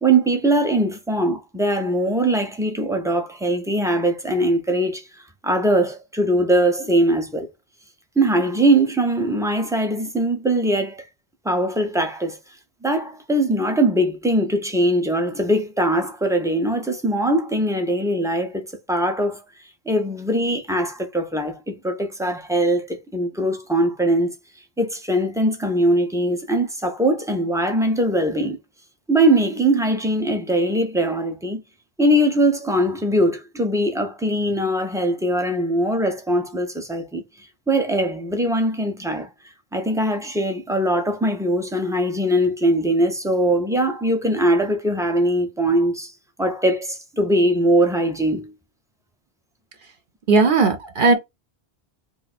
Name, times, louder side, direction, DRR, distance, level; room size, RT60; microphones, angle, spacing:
voice 1, 0.0-5.0 5.4-7.5 8.2-11.0 11.4-12.4 12.8-19.4 19.9-24.3 24.8-28.6 29.1-31.6 32.0-37.2 37.7-39.3 39.7-46.1 46.4-48.5, right 1 dB, 5° right, 0.4 m, -21 dB
voice 2, 50.3-51.1, right 3 dB, 60° right, 0.8 m, -16 dB
2.6 x 2.4 x 4.0 m
omnidirectional pair, 1.1 m